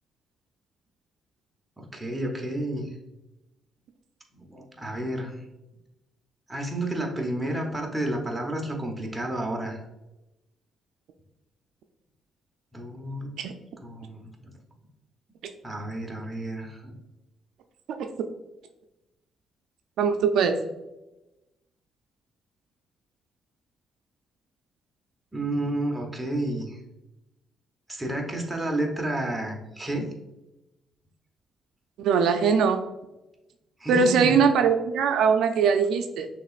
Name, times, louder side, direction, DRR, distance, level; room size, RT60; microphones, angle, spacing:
voice 1, 1.8-2.9 4.3-5.3 6.5-9.8 12.7-13.3 13.8-14.5 15.6-16.9 25.3-26.8 27.9-30.1 33.8-34.4, right 1 dB, 10° right, 1 dB, 1.0 m, -31 dB
voice 2, 20.0-20.6 32.0-32.8 33.9-36.3, right 6 dB, 80° right, 6 dB, 0.4 m, -21 dB
6.3 x 3.0 x 2.4 m, 0.97 s
cardioid pair, 90°, 0 cm